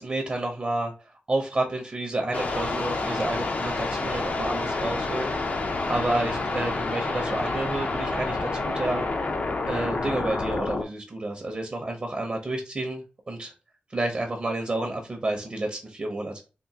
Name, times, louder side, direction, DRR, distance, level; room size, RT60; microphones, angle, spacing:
voice 1, 0.0-9.1 9.7-13.5 13.9-16.4, right 2 dB, 35° right, 2 dB, 0.7 m, -30 dB
sound 1, 2.3-10.8, left 3 dB, 45° left, 0.5 m, -28 dB
3.7 x 2.5 x 2.7 m, 0.32 s
wide cardioid pair, 140°, 3 cm